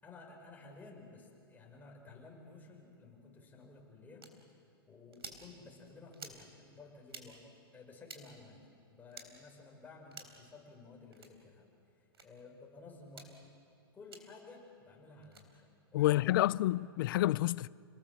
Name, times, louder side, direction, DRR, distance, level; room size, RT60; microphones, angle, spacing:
voice 1, 0.0-7.4 7.7-11.7 12.0-13.5 13.9-16.6, left 3 dB, 15° left, 5.6 m, -54 dB
sound 1, 4.2-4.3 5.1-5.4 6.1-6.4 7.1-7.3 8.0-8.2 9.1-9.3 10.1-10.4 11.1-11.3 12.1-12.3 13.1-13.3 14.1-14.2 15.2-15.4, right 5 dB, 90° right, 3.8 m, -49 dB
voice 2, 15.9-17.7, left 16 dB, 60° left, 0.5 m, -29 dB
29.5 x 19.5 x 7.4 m
hypercardioid pair, 125°, 13 cm